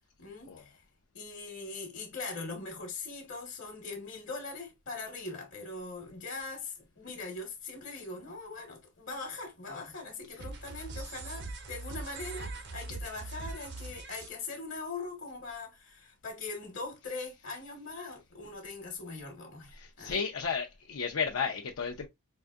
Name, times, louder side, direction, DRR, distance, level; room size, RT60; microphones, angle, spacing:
voice 1, 0.2-0.8 1.1-20.2, left 3 dB, 65° left, 1.0 m, -41 dB
sound 1, 10.4-14.3, right 3 dB, 55° right, 0.7 m, -41 dB
voice 2, 19.7-22.1, left 6 dB, 85° left, 0.5 m, -33 dB
4.6 x 2.6 x 2.3 m
head